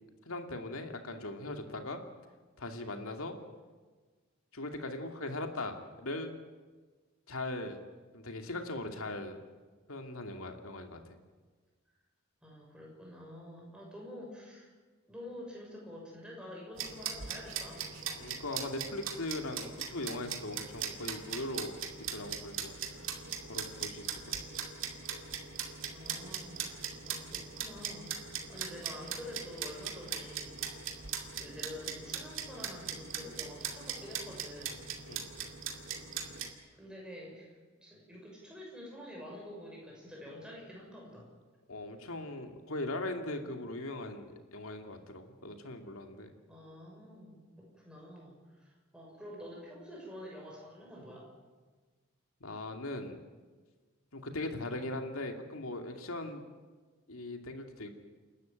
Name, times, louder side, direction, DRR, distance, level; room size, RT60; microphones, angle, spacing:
voice 1, 0.2-2.0 2.6-3.3 4.5-6.4 7.3-7.8 8.1-9.4 9.9-11.1 18.2-23.1 23.5-24.4 35.1-35.3 41.7-46.3 52.4-53.2 54.1-56.4 57.1-57.9, left 2 dB, 85° left, 5 dB, 2.5 m, -40 dB
voice 2, 12.4-14.7 15.1-18.0 23.0-23.2 25.9-30.6 31.3-34.9 36.7-41.3 46.5-51.3, equal, 5° right, -2 dB, 6.7 m, -48 dB
sound 1, 16.8-36.5, right 7 dB, 70° right, 2.5 m, -40 dB
29.0 x 12.5 x 9.2 m, 1.4 s
head